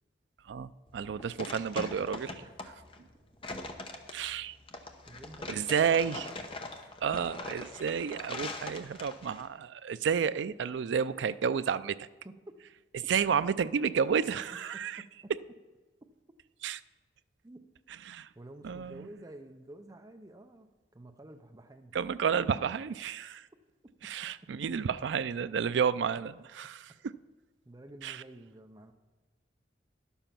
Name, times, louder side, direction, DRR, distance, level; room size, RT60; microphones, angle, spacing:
voice 1, 0.5-2.4 4.1-4.6 5.5-6.3 7.0-12.1 12.9-15.0 16.6-16.8 18.1-18.3 18.6-19.1 21.9-23.5 24.0-26.8 28.0-28.2, right 7 dB, 75° right, 14 dB, 0.4 m, -31 dB
sound 1, 0.9-9.4, left 2 dB, 30° left, 0.9 m, -42 dB
voice 2, 5.1-6.6 12.2-12.5 15.0-15.1 17.4-17.6 18.3-22.0 24.4-24.5 26.9-27.0 27.6-28.9, right 1 dB, 20° right, 6 dB, 0.6 m, -50 dB
11.0 x 7.1 x 5.8 m, 1.3 s
head